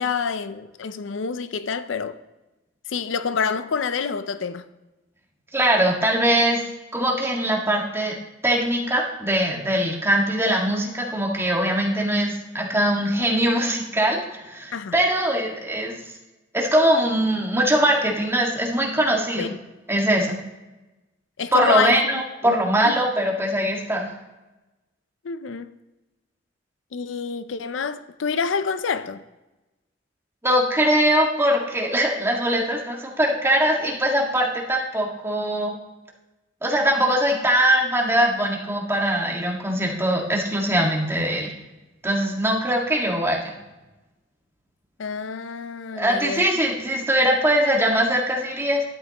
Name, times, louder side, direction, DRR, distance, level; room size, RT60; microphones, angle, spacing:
voice 1, 0.0-2.2 2.9-4.7 14.7-14.9 19.4-19.6 21.4-22.0 22.4-22.9 25.2-25.7 26.9-29.2 45.0-46.5, left 6 dB, 80° left, 0.5 m, -27 dB
voice 2, 5.5-6.6 6.9-8.2 8.4-15.9 16.5-19.5 19.9-20.4 21.5-24.1 30.4-35.7 36.6-41.5 42.0-43.4 45.9-48.8, right 1 dB, 15° right, 1.8 m, -21 dB
12.5 x 9.5 x 3.0 m
head